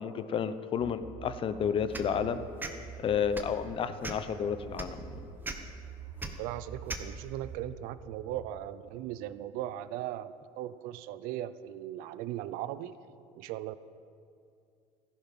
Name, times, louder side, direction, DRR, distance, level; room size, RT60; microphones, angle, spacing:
voice 1, 0.0-2.5 3.0-5.2, left 7 dB, 35° left, 12 dB, 0.9 m, -31 dB
sound 1, 0.8-8.5, right 5 dB, 50° right, 2.2 m, -47 dB
sound 2, 1.9-2.1 2.6-2.7 3.3-3.5 4.0-4.3 4.8-4.9 5.4-5.6 6.2-6.3 6.9-7.0, right 3 dB, 15° right, 1.2 m, -37 dB
voice 2, 6.4-12.9 13.3-13.8, right 13 dB, 75° right, 15 dB, 0.6 m, -38 dB
17.0 x 14.5 x 5.5 m, 2.5 s
cardioid pair, 140°, 15 cm